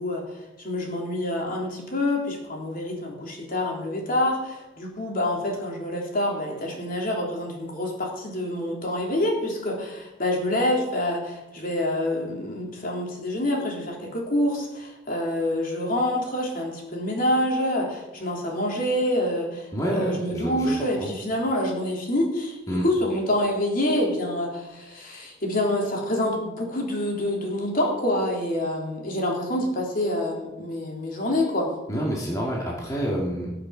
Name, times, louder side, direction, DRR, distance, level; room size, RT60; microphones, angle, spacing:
voice 1, 0.0-31.7, left 1 dB, 50° left, -1 dB, 3.5 m, -27 dB
voice 2, 19.7-21.1 22.7-22.9 31.9-33.5, equal, 20° left, -3 dB, 2.1 m, -28 dB
19.5 x 6.7 x 5.9 m, 0.99 s
head